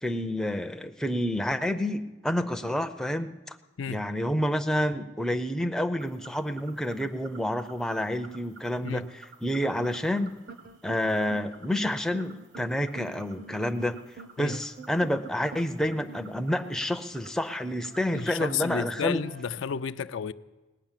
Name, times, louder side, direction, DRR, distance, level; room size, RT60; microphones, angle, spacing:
voice 1, 0.0-3.6 3.9-10.4 10.8-14.0 14.4-19.2, left 1 dB, 5° left, 0.5 m, -29 dB
sound 1, 6.0-18.6, right 4 dB, 70° right, 1.6 m, -53 dB
sound 2, 9.8-17.3 17.9-19.5, right 3 dB, 50° right, 0.8 m, -47 dB
voice 2, 18.1-20.3, left 7 dB, 70° left, 0.4 m, -32 dB
18.5 x 9.4 x 7.4 m
head